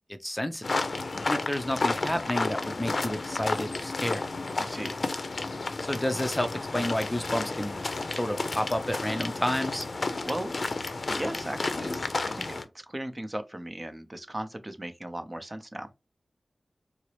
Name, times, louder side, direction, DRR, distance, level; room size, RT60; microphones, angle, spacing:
voice 1, 0.1-0.7 1.1-4.3 5.8-7.8 8.1-9.9, left 1 dB, 15° left, 0.5 m, -30 dB
sound 1, 0.6-12.6, left 3 dB, 65° left, 0.5 m, -32 dB
voice 2, 4.6-5.0 10.2-10.5 11.1-15.9, right 1 dB, 30° right, 0.7 m, -37 dB
4.4 x 2.0 x 2.9 m
cardioid pair, 45°, 0 cm